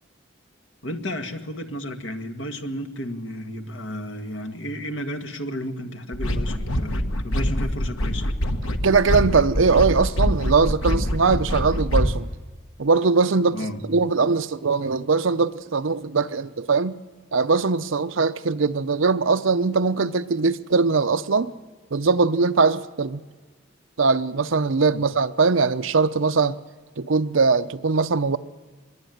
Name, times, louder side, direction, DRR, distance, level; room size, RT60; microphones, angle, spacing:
voice 1, 0.8-8.3 13.5-13.9 24.9-25.0, equal, 65° left, 1.8 m, -33 dB
sound 1, 6.1-12.2, equal, 90° left, 1.4 m, -24 dB
voice 2, 8.8-12.3 12.8-13.6 13.9-17.0 17.3-21.5 21.9-23.2 24.0-26.6 27.0-28.4, right 4 dB, 75° right, 0.7 m, -21 dB
23.5 x 22.0 x 9.3 m
head